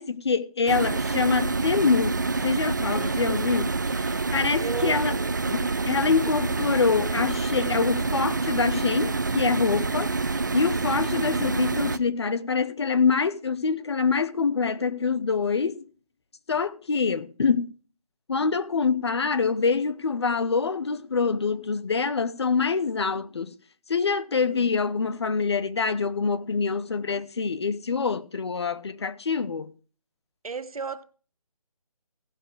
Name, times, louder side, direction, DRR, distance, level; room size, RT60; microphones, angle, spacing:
voice 1, 0.0-5.2 5.5-15.8 16.5-17.7 18.3-23.6 23.9-29.7, left 5 dB, 45° left, 0.8 m, -25 dB
sound 1, 0.7-12.0, right 3 dB, 30° right, 0.4 m, -27 dB
voice 2, 2.9-3.6 4.6-5.3 24.3-24.7 30.4-31.0, right 5 dB, 70° right, 1.1 m, -36 dB
16.0 x 6.1 x 4.7 m
figure-of-eight pair, 170°, 19 cm